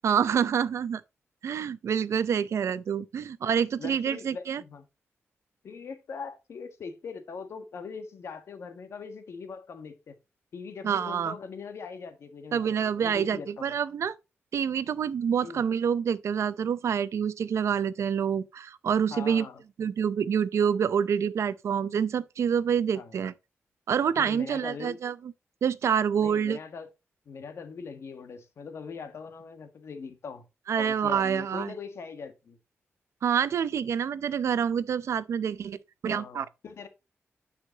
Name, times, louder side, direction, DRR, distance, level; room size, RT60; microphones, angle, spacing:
voice 1, 0.0-1.0 1.4-4.6 10.8-11.3 12.5-14.1 14.5-19.5 19.8-23.3 23.9-25.1 25.6-26.6 30.7-31.7 33.2-35.8 36.0-36.5, right 7 dB, 80° right, 0.6 m, -27 dB
voice 2, 3.8-4.8 5.6-10.2 10.5-13.7 15.4-15.6 19.1-19.6 22.9-23.2 24.2-25.0 26.2-26.9 27.2-30.4 30.7-32.6 36.1-36.9, left 5 dB, 65° left, 1.4 m, -41 dB
9.2 x 5.7 x 2.8 m
wide cardioid pair, 170°, 5 cm